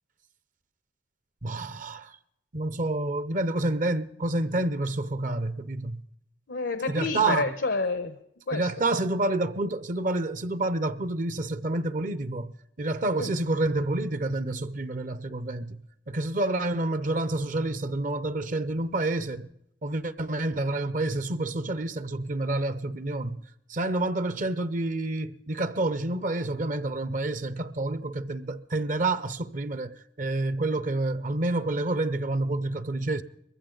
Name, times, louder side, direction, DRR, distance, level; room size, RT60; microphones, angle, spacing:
voice 1, 1.4-2.2 2.5-6.0 6.9-7.5 8.5-12.5 12.8-19.5 19.8-23.4 23.7-33.2, right 2 dB, 50° right, 0.7 m, -28 dB
voice 2, 6.5-8.2 8.5-8.7 13.2-13.3, left 3 dB, 90° left, 1.0 m, -29 dB
21.0 x 15.0 x 3.9 m
head